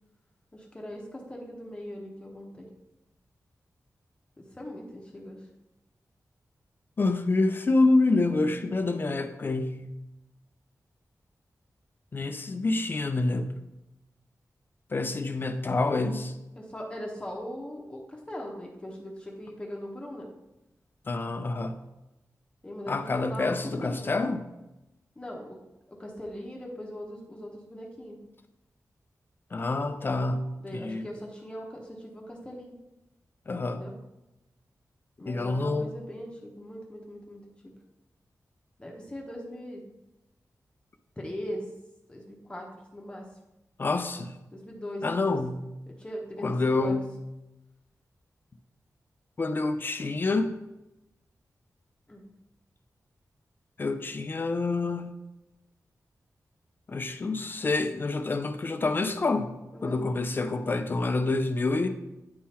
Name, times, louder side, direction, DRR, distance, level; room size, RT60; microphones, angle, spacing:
voice 1, 0.5-2.7 4.4-5.4 16.5-20.3 22.6-24.1 25.2-25.6 25.9-28.2 30.6-32.8 33.7-33.9 35.2-37.7 38.8-39.8 41.2-41.7 42.1-43.3 44.5-45.4 45.9-47.0 52.1-52.2 59.7-60.0, equal, 15° left, -1 dB, 0.9 m, -40 dB
voice 2, 7.0-9.9 12.1-13.5 14.9-16.3 21.1-21.8 22.9-24.5 29.5-30.4 30.7-31.0 33.5-33.8 35.2-35.9 43.8-44.4 45.0-45.7 46.4-47.1 49.4-50.5 53.8-55.1 56.9-59.6 59.8-61.9, left 3 dB, 35° left, 8 dB, 0.4 m, -27 dB
9.5 x 3.7 x 4.3 m, 0.95 s
wide cardioid pair, 175°, 6 cm